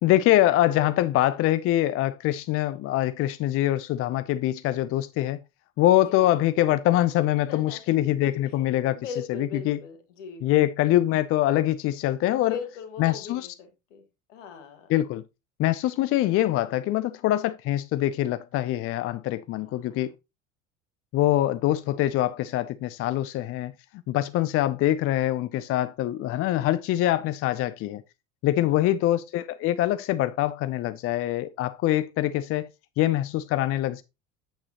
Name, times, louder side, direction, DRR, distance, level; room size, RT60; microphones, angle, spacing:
voice 1, 0.0-5.4 5.8-9.0 9.3-9.8 10.4-12.6 13.0-13.5 14.9-15.2 15.6-20.1 21.1-23.7 24.1-28.0 28.4-32.7 33.0-34.0, left 14 dB, 35° left, 0.5 m, -24 dB
voice 2, 7.5-7.8 8.4-8.6 8.9-10.5 12.5-14.0 14.3-14.9 19.6-20.1 28.6-29.0, left 5 dB, 70° left, 1.9 m, -40 dB
8.4 x 7.7 x 2.9 m
figure-of-eight pair, 70°, 39 cm